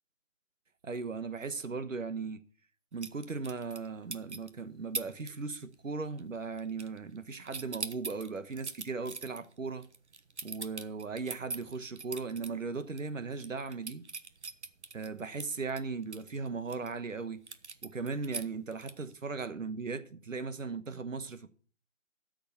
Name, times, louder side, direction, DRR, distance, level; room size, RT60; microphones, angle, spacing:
voice 1, 0.8-2.4 2.9-9.9 10.4-14.1 14.9-17.4 17.8-21.5, right 4 dB, 85° right, 1.2 m, -37 dB
sound 1, 3.0-3.9 4.1-4.5 4.9-5.3 5.6-5.9 6.2-7.2 7.5-12.5 12.9-13.0 13.3-16.9 17.5-19.1, right 4 dB, 60° right, 1.1 m, -41 dB
12.5 x 6.7 x 6.8 m
figure-of-eight pair, 175°, 38 cm